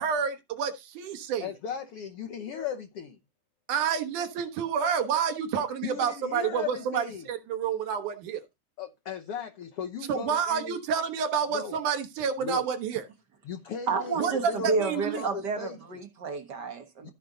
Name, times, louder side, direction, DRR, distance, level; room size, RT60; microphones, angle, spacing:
voice 1, 0.0-1.5 3.7-8.4 10.1-13.0 14.2-15.2, right 7 dB, 75° right, 2.7 m, -29 dB
voice 2, 1.4-3.2 5.5-7.3 8.8-10.8 11.5-11.8 12.4-12.7 13.4-15.8 17.0-17.1, left 7 dB, 65° left, 1.5 m, -37 dB
voice 3, 13.9-17.1, right 4 dB, 50° right, 1.3 m, -30 dB
15.5 x 5.2 x 3.9 m
omnidirectional pair, 3.7 m